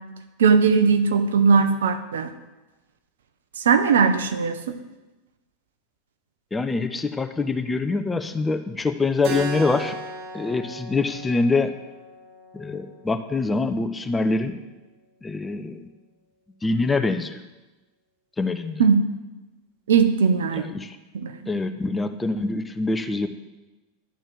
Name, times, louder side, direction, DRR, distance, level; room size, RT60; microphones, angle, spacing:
voice 1, 0.4-2.3 3.6-4.8 18.8-19.1 19.9-20.6 21.1-21.3, right 5 dB, 70° right, 9 dB, 0.8 m, -19 dB
voice 2, 6.5-9.9 10.3-11.8 12.5-14.5 15.2-15.9 16.6-17.4 18.4-18.8 20.5-21.0 21.5-23.3, left 3 dB, 15° left, 8 dB, 0.7 m, -25 dB
Keyboard (musical), 9.2-14.3, right 3 dB, 55° right, 1.5 m, -37 dB
11.5 x 4.5 x 7.6 m, 1.1 s
figure-of-eight pair, 85°, 0 cm